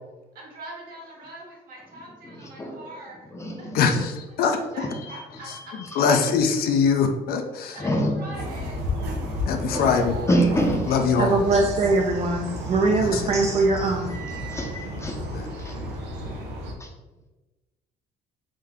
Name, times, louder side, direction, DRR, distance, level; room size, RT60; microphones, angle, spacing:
voice 1, 0.3-4.0 4.7-6.0 7.7-9.0 9.3-10.4 10.9-11.0, right 2 dB, 60° right, -2 dB, 1.5 m, -42 dB
voice 2, 2.2-2.8 3.2-3.8 4.8-5.2 5.5-6.0 7.8-8.4 8.7-9.9 10.3-10.8 13.7-15.9 16.1-16.4 16.8-16.9, equal, 15° left, 1 dB, 0.6 m, -28 dB
voice 3, 3.7-4.1 4.4-4.6 6.0-7.8 9.5-10.2 10.9-11.4 13.0-13.2 15.3-15.5, left 5 dB, 65° left, 5 dB, 0.5 m, -22 dB
sound 1, 8.3-16.7, left 1 dB, 85° right, 0.8 m, -32 dB
voice 4, 11.2-14.1, right 3 dB, 40° right, 1 dB, 0.4 m, -22 dB
3.7 x 2.6 x 3.5 m, 1.1 s
cardioid pair, 110°, 17 cm